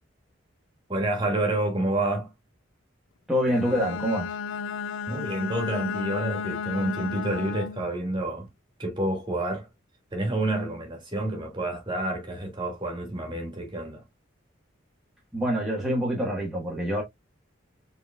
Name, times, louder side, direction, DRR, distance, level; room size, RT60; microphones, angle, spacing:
voice 1, 0.9-2.3 5.1-8.5 8.8-9.7 10.1-14.0, right 1 dB, 25° right, 1.9 m, -29 dB
voice 2, 3.3-4.3 15.3-17.0, equal, ahead, 1.3 m, -26 dB
Bowed string instrument, 3.5-8.0, left 6 dB, 80° left, 0.3 m, -33 dB
4.9 x 3.9 x 2.3 m
head